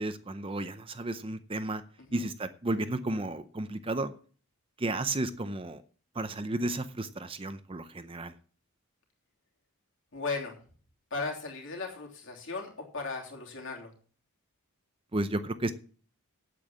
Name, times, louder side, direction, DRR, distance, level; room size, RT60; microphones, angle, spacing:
voice 1, 0.0-1.8 2.1-4.1 4.8-5.8 6.1-8.3 15.1-15.7, right 2 dB, 25° right, 10 dB, 0.6 m, -33 dB
voice 2, 10.1-10.6 11.1-13.9, left 3 dB, 60° left, 0 dB, 3.1 m, -36 dB
8.6 x 8.5 x 7.5 m, 0.42 s
head